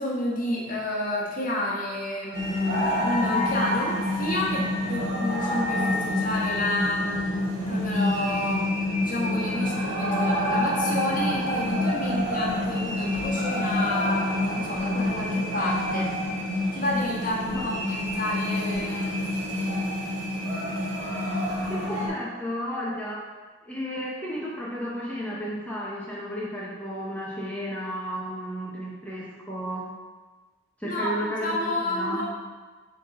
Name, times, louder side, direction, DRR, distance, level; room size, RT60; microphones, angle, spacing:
voice 1, 0.0-8.7 9.0-16.2 16.7-19.2 21.9-22.1 30.8-32.2, left 1 dB, 45° left, -6 dB, 1.4 m, -30 dB
sound 1, 2.3-22.1, left 1 dB, 65° right, 1.4 m, -27 dB
voice 2, 21.7-23.2 23.6-29.8 30.8-32.2, equal, 5° left, -6 dB, 0.9 m, -33 dB
7.3 x 3.9 x 3.8 m, 1.4 s
head